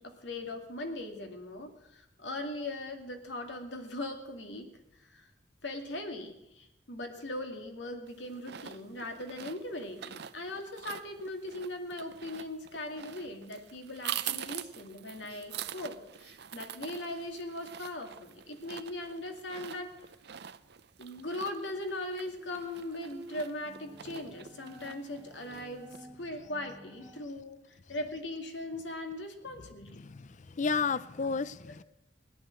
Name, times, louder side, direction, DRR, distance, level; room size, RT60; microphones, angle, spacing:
voice 1, 0.0-4.7 5.1-5.3 5.6-19.9 21.0-27.6 27.9-30.1, left 1 dB, 75° left, 2.3 m, -39 dB
sound 1, 8.1-26.0, right 10 dB, 60° right, 0.6 m, -45 dB
Bowed string instrument, 22.3-27.3, right 1 dB, 15° right, 0.9 m, -49 dB
voice 2, 29.9-31.8, left 5 dB, 40° left, 0.5 m, -32 dB
17.0 x 11.0 x 7.6 m
head